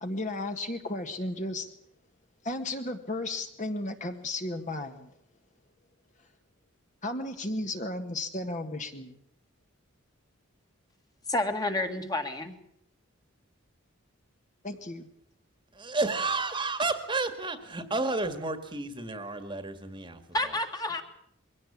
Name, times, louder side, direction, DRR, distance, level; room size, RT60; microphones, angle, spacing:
voice 1, 0.0-1.7 2.4-5.1 7.0-9.2 14.6-15.1, left 2 dB, 35° left, 6 dB, 1.7 m, -34 dB
voice 2, 11.3-12.6 20.3-21.0, left 2 dB, 20° left, 6 dB, 1.9 m, -29 dB
voice 3, 15.7-20.6, right 3 dB, 25° right, 9 dB, 1.8 m, -31 dB
22.5 x 17.0 x 8.6 m, 0.71 s
head